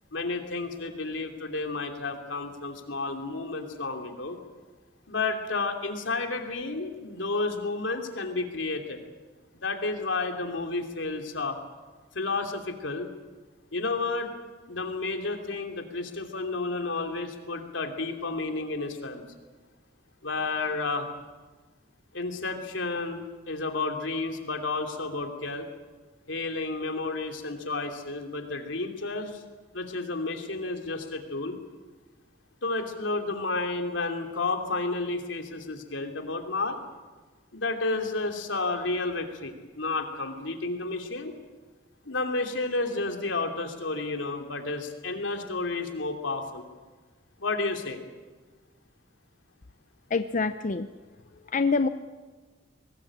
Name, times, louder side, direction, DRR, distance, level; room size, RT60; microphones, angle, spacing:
voice 1, 0.1-4.4 5.1-9.0 9.5-11.6 12.1-13.1 13.7-14.3 14.7-19.2 20.2-21.1 22.1-25.7 26.3-29.4 29.7-31.6 32.6-36.8 37.5-41.3 42.0-46.6 47.4-48.0, left 3 dB, 85° left, 4 dB, 2.9 m, -31 dB
voice 2, 50.1-50.9 51.5-51.9, left 4 dB, 45° left, 10 dB, 0.6 m, -25 dB
23.5 x 19.5 x 8.7 m, 1.3 s
head